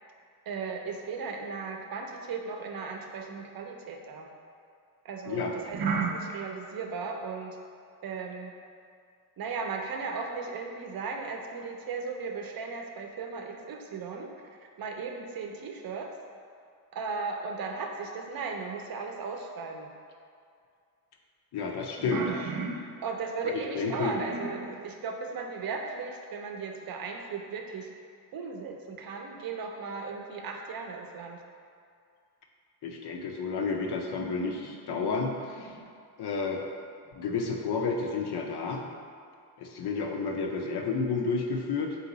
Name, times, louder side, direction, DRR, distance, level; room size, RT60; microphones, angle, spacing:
voice 1, 0.5-4.3 5.0-7.6 8.0-8.5 9.4-16.2 16.9-19.9 22.0-27.9 28.3-31.4 33.7-33.9 34.2-35.1 35.6-35.9, right 4 dB, 65° right, 3 dB, 0.5 m, -36 dB
voice 2, 21.5-22.2 23.4-24.2 32.8-35.7 36.2-36.6 37.1-38.8 39.6-42.0, left 4 dB, 80° left, 1 dB, 0.6 m, -31 dB
3.8 x 2.8 x 3.9 m, 2.3 s
wide cardioid pair, 110°, 39 cm